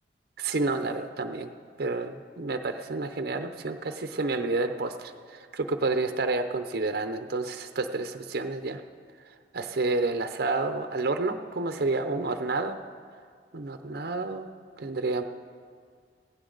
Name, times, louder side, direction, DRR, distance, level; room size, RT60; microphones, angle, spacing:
voice 1, 0.4-1.5 1.8-8.8 9.5-12.8 13.5-14.5 14.8-15.2, right 3 dB, 60° right, 7 dB, 0.7 m, -29 dB
16.0 x 16.0 x 3.9 m, 2.1 s
head